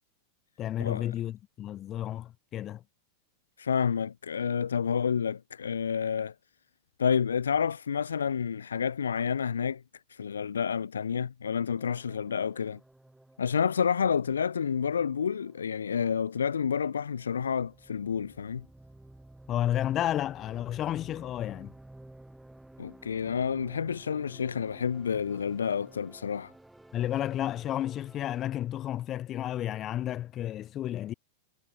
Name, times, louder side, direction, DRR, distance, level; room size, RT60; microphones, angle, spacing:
voice 1, 0.6-2.8 19.5-21.7 26.9-31.1, left 12 dB, 30° left, 1.2 m, -32 dB
voice 2, 3.6-6.3 7.0-9.8 10.1-12.8 13.4-18.7 22.8-26.5, left 7 dB, 70° left, 0.4 m, -29 dB
sound 1, 11.7-28.5, right 1 dB, 5° right, 2.0 m, -54 dB
figure-of-eight pair, 90°, 0 cm